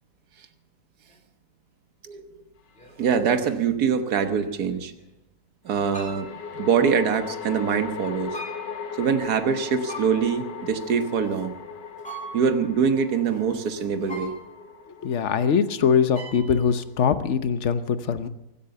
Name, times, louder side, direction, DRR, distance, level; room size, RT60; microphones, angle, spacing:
sound 1, 1.1-1.2 2.7-3.4 4.4-5.1 5.9-6.4 8.3-8.9 9.9-10.5 12.0-12.7 14.1-14.8 16.1-16.7, right 1 dB, 5° left, 3.0 m, -41 dB
sound 2, 2.7-2.8 5.7-17.0, left 6 dB, 85° left, 1.9 m, -39 dB
voice 1, 3.0-4.9 5.6-6.3 6.5-8.4 9.0-11.5 12.3-14.4, right 6 dB, 65° right, 8 dB, 1.7 m, -24 dB
voice 2, 15.0-18.3, left 7 dB, 50° left, 11 dB, 1.1 m, -22 dB
23.5 x 8.5 x 6.9 m, 0.90 s
omnidirectional pair, 1.8 m